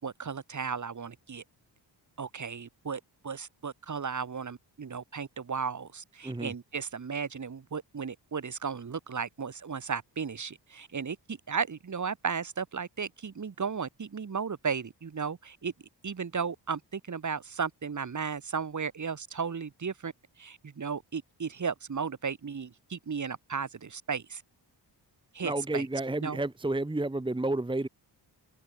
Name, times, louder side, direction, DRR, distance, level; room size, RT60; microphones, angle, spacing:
voice 1, 0.0-1.4 2.2-15.7 16.0-20.1 20.4-24.4 25.3-25.9 26.2-26.4, right 6 dB, 45° right, 5.1 m, -35 dB
voice 2, 6.2-6.5 25.4-27.9, right 2 dB, 10° right, 1.8 m, -31 dB
wide cardioid pair, 145°, 42 cm